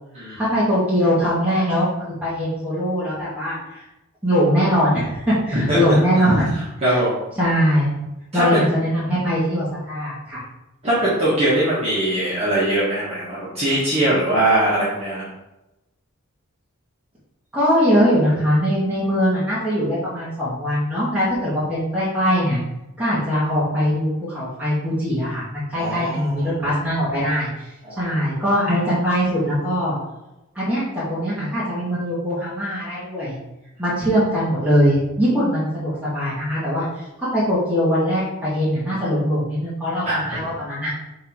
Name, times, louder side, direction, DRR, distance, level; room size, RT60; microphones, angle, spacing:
voice 1, 0.4-3.8 4.2-6.5 6.8-7.0 7.4-7.9 8.3-10.4 17.5-22.6 23.0-27.7 28.0-30.0 30.6-33.3 33.8-37.0 37.3-40.9, equal, 5° right, -10 dB, 1.9 m, -21 dB
voice 2, 6.8-7.1 8.3-8.6 10.8-15.2 25.7-26.5 27.8-28.0 40.0-40.3, right 1 dB, 30° right, -11 dB, 2.0 m, -21 dB
6.5 x 3.9 x 4.7 m, 0.95 s
head